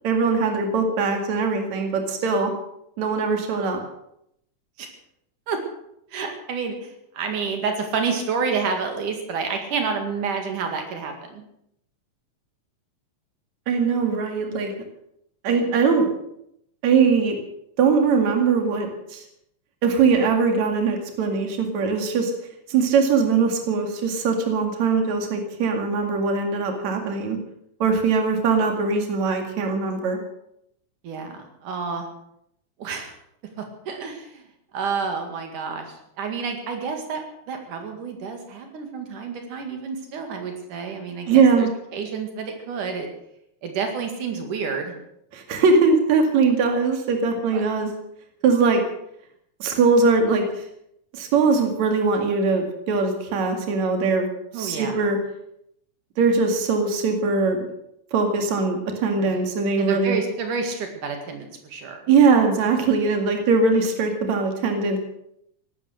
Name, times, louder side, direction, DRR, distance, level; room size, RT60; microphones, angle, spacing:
voice 1, 0.0-2.5 3.0-3.8 13.7-14.7 15.4-16.1 16.8-17.4 17.8-19.2 19.8-22.3 22.7-27.4 27.8-30.2 41.3-41.7 45.3-47.9 48.4-48.8 49.6-50.5 51.1-54.3 54.5-55.2 56.2-57.7 58.1-60.2 62.1-65.0, right 4 dB, 65° right, 4 dB, 3.4 m, -21 dB
voice 2, 6.1-11.4 31.0-32.1 32.8-33.1 33.6-34.4 34.7-35.9 36.2-37.2 37.5-41.7 41.9-43.1 43.6-44.9 47.5-47.6 54.5-55.0 59.2-59.4 59.8-62.0, right 5 dB, 85° right, 4 dB, 3.7 m, -29 dB
17.5 x 12.5 x 6.6 m, 0.76 s
omnidirectional pair, 3.5 m